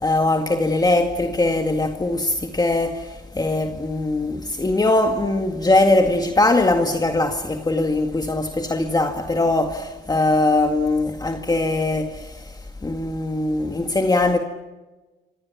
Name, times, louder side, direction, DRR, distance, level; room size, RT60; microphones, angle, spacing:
voice 1, 0.0-12.5 12.8-14.4, left 2 dB, 20° left, 2.0 m, -21 dB
29.5 x 26.0 x 6.0 m
cardioid pair, 90°, 20 cm